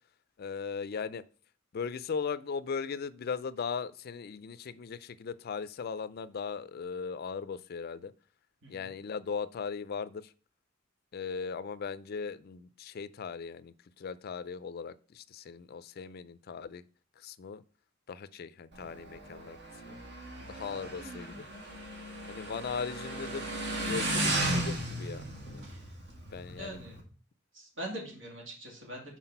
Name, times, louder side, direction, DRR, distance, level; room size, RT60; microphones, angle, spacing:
voice 1, 0.4-1.2 1.7-8.1 8.7-10.2 11.1-13.7 14.0-16.8 17.2-17.6 18.1-19.6 19.9-20.0 20.5-21.5 22.3-23.5 23.9-25.6 26.3-26.8, left 5 dB, 50° left, 0.4 m, -38 dB
Motorcycle, 18.7-27.0, right 1 dB, 60° right, 1.6 m, -35 dB
voice 2, 26.6-27.0 27.5-29.2, right 1 dB, 80° right, 2.6 m, -43 dB
5.8 x 4.6 x 5.5 m
head